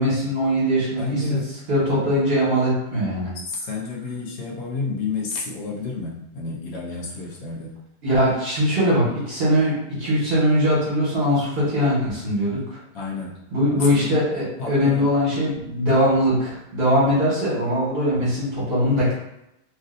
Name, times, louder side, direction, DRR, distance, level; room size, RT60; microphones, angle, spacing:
voice 1, 0.0-1.4 1.7-3.3 8.0-12.8 13.5-19.1, equal, 45° right, -8 dB, 1.4 m, -21 dB
voice 2, 1.0-1.6 3.5-7.7 12.9-13.4 13.7-14.2 14.6-15.1, left 3 dB, 80° left, -2 dB, 1.2 m, -30 dB
3.2 x 2.6 x 2.5 m, 0.84 s
omnidirectional pair, 1.5 m